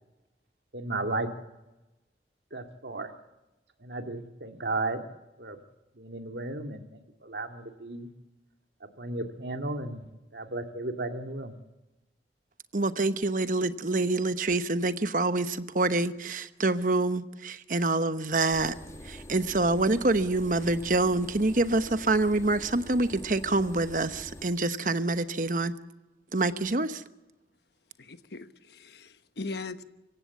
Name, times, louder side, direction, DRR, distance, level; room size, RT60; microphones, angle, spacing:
voice 1, 0.7-1.3 2.5-3.1 3.8-5.0 5.4-5.6 6.0-8.1 9.0-10.1 10.3-11.5, right 2 dB, 75° right, 5 dB, 2.2 m, -34 dB
voice 2, 12.7-18.7 19.0-25.7 26.3-27.0, right 2 dB, 50° right, 11 dB, 1.0 m, -26 dB
sound 1, 18.5-24.5, left 1 dB, 15° left, 1.8 m, -45 dB
voice 3, 28.0-29.8, left 3 dB, 70° left, 11 dB, 1.2 m, -39 dB
25.5 x 16.0 x 8.3 m, 1.1 s
head